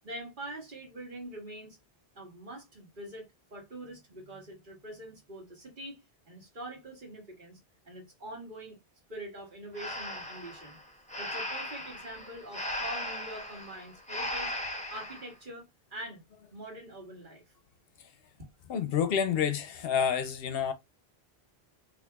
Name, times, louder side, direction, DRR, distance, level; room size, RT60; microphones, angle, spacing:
voice 1, 0.0-1.8 2.1-7.6 7.8-8.8 9.1-10.8 11.2-14.5 14.9-15.6 15.9-16.2 16.5-17.4, right 1 dB, 50° right, 1.7 m, -44 dB
Breathing, 9.7-15.3, left 1 dB, 5° left, 0.8 m, -37 dB
voice 2, 18.7-20.7, left 7 dB, 70° left, 0.7 m, -29 dB
4.4 x 2.8 x 2.3 m
omnidirectional pair, 1.1 m